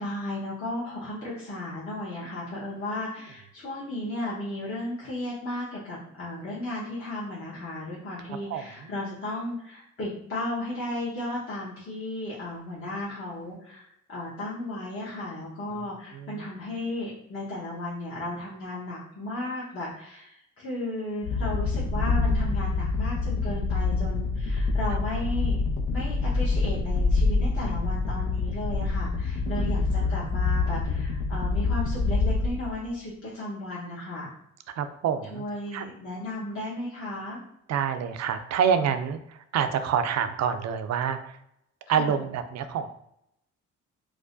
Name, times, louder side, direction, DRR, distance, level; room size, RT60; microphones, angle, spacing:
voice 1, 0.0-25.6 25.9-34.3 35.3-37.4 41.9-42.2, left 1 dB, 45° left, -7 dB, 1.1 m, -35 dB
voice 2, 8.5-8.9 15.7-15.9 16.1-16.5 29.4-29.7 30.0-30.3 34.8-35.4 35.7-35.8 37.7-41.4 41.9-42.9, right 7 dB, 60° right, 9 dB, 0.4 m, -27 dB
sound 1, 21.2-32.8, left 3 dB, 85° left, 0.7 m, -26 dB
4.6 x 2.2 x 2.5 m, 0.77 s
cardioid pair, 90°, 30 cm